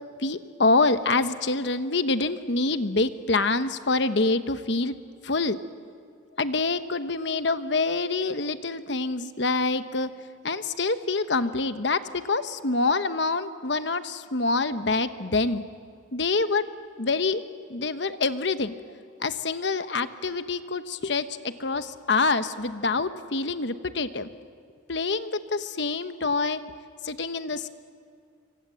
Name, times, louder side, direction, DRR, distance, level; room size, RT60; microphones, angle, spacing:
voice 1, 0.2-4.9 5.2-5.6 6.4-10.1 10.4-15.6 16.1-16.7 17.0-17.4 17.7-18.7 19.2-24.3 24.9-26.6 27.0-27.7, left 3 dB, 65° left, 11 dB, 1.1 m, -26 dB
26.5 x 24.5 x 7.7 m, 2.4 s
head